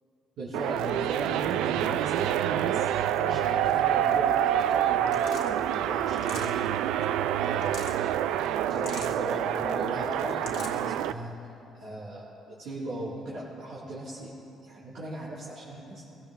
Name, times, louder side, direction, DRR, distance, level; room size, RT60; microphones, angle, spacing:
voice 1, 0.4-2.3 2.6-6.7 7.4-11.4 11.7-14.4 14.6-16.0, right 1 dB, 70° right, -11 dB, 3.7 m, -38 dB
sound 1, 0.5-11.1, right 10 dB, 85° right, 0.3 m, -27 dB
sound 2, 5.0-5.5 6.1-6.7 7.4-8.0 8.7-9.2 10.1-10.8, left 7 dB, 75° left, 1.4 m, -42 dB
22.0 x 16.5 x 2.2 m, 2.8 s
cardioid pair, 95°, 0 cm